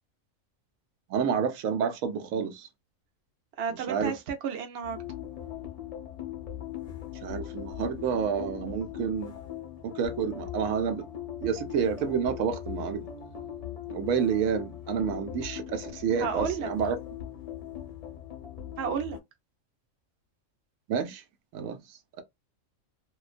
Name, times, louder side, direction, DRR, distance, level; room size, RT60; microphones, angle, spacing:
voice 1, 1.1-2.7 3.7-4.1 7.2-9.3 9.8-11.0 11.4-13.1 13.9-17.0 20.9-21.2 21.5-21.8, right 7 dB, 85° right, 1.0 m, -29 dB
voice 2, 3.6-5.0 16.2-16.7 18.8-19.2, right 7 dB, 60° right, 0.8 m, -32 dB
sound 1, 4.8-19.2, left 10 dB, 45° left, 0.5 m, -40 dB
2.5 x 2.2 x 2.4 m
omnidirectional pair, 1.4 m